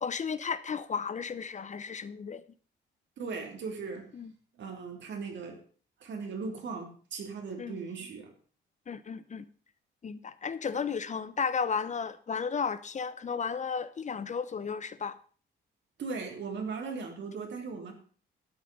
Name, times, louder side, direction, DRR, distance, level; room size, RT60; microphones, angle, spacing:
voice 1, 0.0-2.4 4.2-4.3 7.6-7.8 8.9-9.5 10.0-15.1 17.0-17.1, left 6 dB, 35° left, 14 dB, 0.8 m, -34 dB
voice 2, 3.2-4.1 4.6-5.6 6.0-8.3 16.0-17.9, right 4 dB, 65° right, 3 dB, 3.3 m, -38 dB
13.0 x 8.5 x 5.3 m, 0.42 s
cardioid pair, 90°, 20 cm